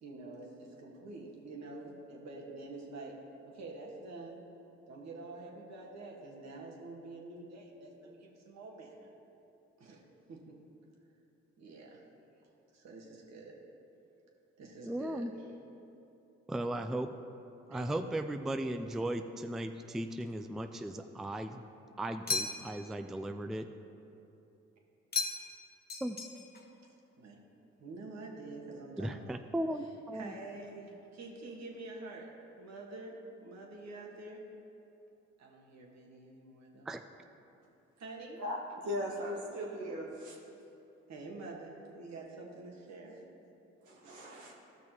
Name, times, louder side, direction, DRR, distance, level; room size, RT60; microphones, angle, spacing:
voice 1, 0.0-3.2 3.4-4.4 4.9-9.1 9.8-10.0 10.3-10.6 11.6-12.0 12.7-13.6 14.6-15.5 17.7-18.0 26.8-27.3 27.8-29.4 30.1-34.4 35.4-36.9 38.0-38.4 41.1-43.2, right 2 dB, 65° right, -1 dB, 1.6 m, -47 dB
voice 2, 14.8-15.3 16.5-17.1 17.7-21.6 22.0-23.7 26.0-26.2 29.0-30.3 36.9-37.0, right 1 dB, ahead, 8 dB, 0.3 m, -36 dB
sound 1, 22.3-22.9 25.1-25.6 25.9-26.7, left 4 dB, 35° left, 1.0 m, -35 dB
voice 3, 38.8-40.4 43.9-44.5, left 1 dB, 85° right, -3 dB, 1.6 m, -38 dB
14.0 x 6.1 x 3.0 m, 2.8 s
supercardioid pair, 60°, 29 cm